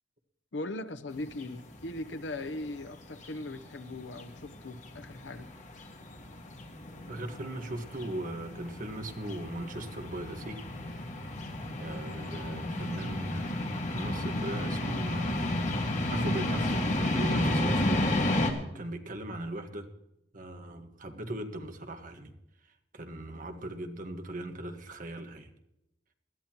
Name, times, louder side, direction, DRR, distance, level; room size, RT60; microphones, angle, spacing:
voice 1, 0.5-5.5, left 2 dB, 85° left, 0.9 m, -39 dB
sound 1, 1.1-18.5, left 1 dB, 40° left, 1.9 m, -32 dB
voice 2, 7.1-10.6 11.8-13.6 13.9-15.4 16.1-18.0 18.7-19.9 20.3-22.3 22.9-25.5, right 1 dB, 50° right, 1.5 m, -39 dB
20.5 x 13.5 x 3.0 m
head